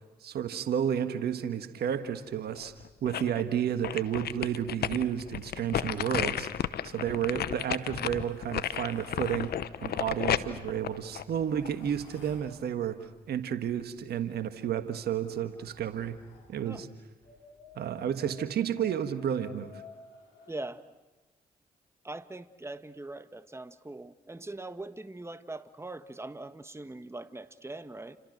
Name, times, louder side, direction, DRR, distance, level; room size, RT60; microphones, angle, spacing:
voice 1, 0.2-2.7 3.0-6.5 6.8-9.5 9.8-16.2 16.5-16.9 17.7-19.8, right 9 dB, 70° right, 10 dB, 1.5 m, -31 dB
sound 1, 2.6-3.4 3.8-11.9 12.3-12.4, left 10 dB, 70° left, 0.9 m, -33 dB
sound 2, 7.2-9.5 10.5-12.5 14.2-16.5 17.2-20.6, left 5 dB, 85° left, 4.4 m, -54 dB
voice 2, 20.5-20.8 22.0-28.2, right 2 dB, 15° right, 12 dB, 1.4 m, -41 dB
29.5 x 26.0 x 6.6 m, 1.2 s
hypercardioid pair, 40°, 17 cm